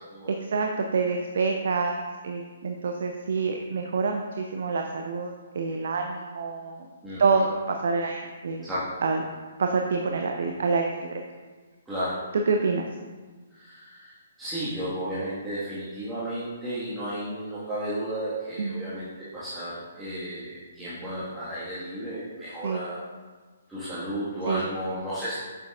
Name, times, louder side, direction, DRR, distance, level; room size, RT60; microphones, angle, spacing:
voice 1, 0.3-6.9 7.2-8.7 9.0-9.2 9.6-11.2 12.3-12.9 18.6-18.8 22.6-22.8 24.5-24.7, right 4 dB, 55° right, 4 dB, 0.5 m, -27 dB
voice 2, 7.0-7.4 8.6-8.8 11.9-12.2 13.5-14.1 14.4-23.0 23.7-25.4, right 1 dB, 5° right, -13 dB, 1.6 m, -33 dB
7.9 x 7.1 x 2.4 m, 1.4 s
figure-of-eight pair, 130°, 0 cm